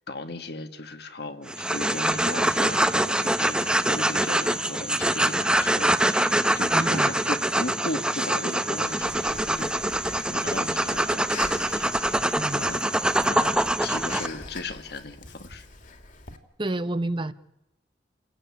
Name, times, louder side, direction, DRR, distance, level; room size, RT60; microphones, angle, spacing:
voice 1, 0.1-9.8 10.3-11.9 12.5-12.8 13.2-15.7, left 2 dB, 65° left, 2.2 m, -36 dB
sound 1, 1.5-14.3, right 1 dB, 5° right, 1.0 m, -24 dB
voice 2, 6.7-7.1 12.3-12.6 16.6-17.3, right 2 dB, 30° right, 1.0 m, -29 dB
Breathing, 8.8-16.4, left 3 dB, 50° left, 2.8 m, -44 dB
29.5 x 16.5 x 9.9 m
head